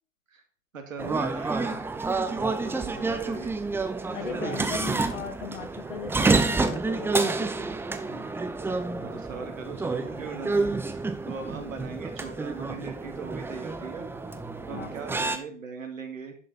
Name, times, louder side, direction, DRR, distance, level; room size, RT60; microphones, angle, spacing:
voice 1, 0.7-1.8 2.3-3.6 4.3-4.8 8.1-8.3 9.0-14.1 14.7-16.4, right 5 dB, 85° right, 5 dB, 2.5 m, -39 dB
sound 1, 1.0-15.4, right 3 dB, 5° right, 0.7 m, -29 dB
voice 2, 4.1-8.1 14.7-14.9, left 7 dB, 75° left, 7 dB, 2.2 m, -38 dB
10.5 x 6.6 x 4.2 m, 0.42 s
hypercardioid pair, 110°, 39 cm